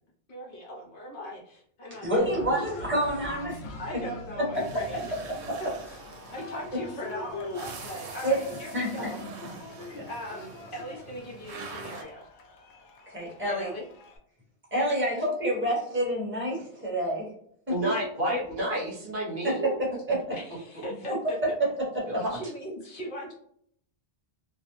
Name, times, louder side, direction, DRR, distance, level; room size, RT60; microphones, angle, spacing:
voice 1, 0.3-2.7 3.8-5.1 5.6-6.0 6.3-9.2 9.6-12.3 13.4-13.8 18.2-18.3 20.3-21.4 22.3-23.3, equal, 55° left, -3 dB, 0.9 m, -39 dB
voice 2, 2.0-3.6 3.9-4.0 8.2-8.4 8.7-9.1 10.0-10.1 13.1-13.7 14.7-17.3 19.4-19.7 20.1-20.2 21.1-21.2 21.9-22.1, right 1 dB, 10° right, -5 dB, 1.0 m, -28 dB
Cheering, 2.2-14.2, left 3 dB, 85° left, 0.9 m, -43 dB
sound 1, 4.5-12.0, right 3 dB, 80° right, 0.8 m, -44 dB
voice 3, 17.7-19.7 22.1-22.4, right 1 dB, 55° right, -3 dB, 1.0 m, -29 dB
2.4 x 2.0 x 2.9 m, 0.65 s
omnidirectional pair, 1.1 m